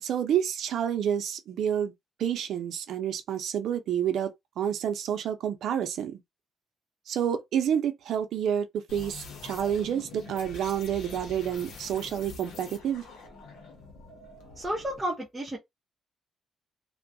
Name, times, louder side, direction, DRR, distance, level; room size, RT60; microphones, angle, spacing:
voice 1, 0.0-1.9 2.2-4.3 4.6-6.2 7.1-8.7 8.9-13.0, right 9 dB, 70° right, 0.5 m, -29 dB
sound 1, 8.9-15.1, left 3 dB, 85° left, 0.8 m, -45 dB
voice 2, 14.6-15.6, equal, 10° right, 0.7 m, -32 dB
2.2 x 2.1 x 2.6 m
cardioid pair, 90°, 0 cm